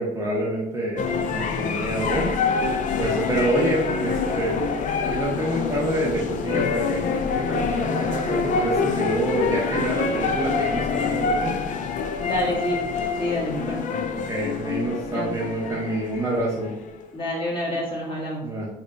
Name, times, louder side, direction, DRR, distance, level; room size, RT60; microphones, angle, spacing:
voice 1, 0.0-2.3 3.0-4.6 5.1-11.6 13.9-14.0 14.3-16.7 18.4-18.7, right 1 dB, 20° right, -4 dB, 0.7 m, -27 dB
sound 1, 1.0-17.1, left 5 dB, 50° left, 0.4 m, -26 dB
voice 2, 12.2-12.8 13.2-13.8 15.1-15.3 17.1-18.6, left 1 dB, 30° left, -6 dB, 1.5 m, -27 dB
3.3 x 2.2 x 3.8 m, 0.87 s
cardioid pair, 110°, 17 cm